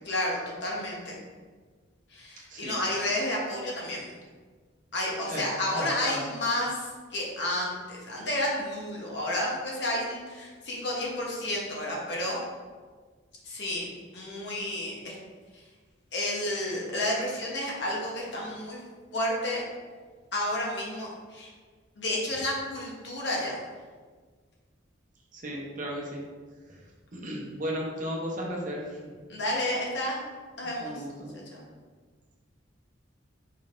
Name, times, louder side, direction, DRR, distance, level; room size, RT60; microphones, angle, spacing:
voice 1, 0.0-1.1 2.1-4.1 4.9-12.4 13.4-13.8 14.1-15.1 16.1-18.8 19.1-19.6 20.3-21.5 22.0-23.6 29.3-30.2 30.6-31.0 31.3-31.6, left 1 dB, 60° left, -3 dB, 1.0 m, -31 dB
voice 2, 5.3-6.4 25.3-26.2 26.7-26.8 27.1-28.8 30.8-31.4, equal, 40° right, -2 dB, 0.7 m, -35 dB
4.7 x 3.7 x 2.5 m, 1.5 s
head